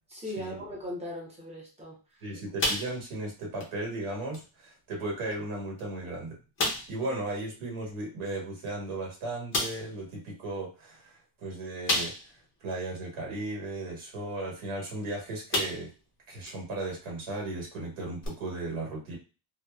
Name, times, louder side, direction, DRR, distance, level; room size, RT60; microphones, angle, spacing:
voice 1, 0.1-2.3, left 1 dB, 15° right, -4 dB, 0.6 m, -39 dB
voice 2, 2.2-6.4 6.9-12.1 12.6-15.9 16.3-19.2, right 2 dB, 80° right, -2 dB, 1.4 m, -36 dB
sound 1, 2.6-3.3 3.6-3.8 4.3-4.4 5.3-5.4 5.8-5.9 6.6-7.0 8.7-8.8 9.5-9.9 11.9-12.5 13.0-13.1 14.9-15.1 15.5-16.0 16.5-16.6 18.2-18.3, left 1 dB, 25° left, 0.5 m, -30 dB
2.8 x 2.1 x 2.3 m, 0.33 s
cardioid pair, 175°, 49 cm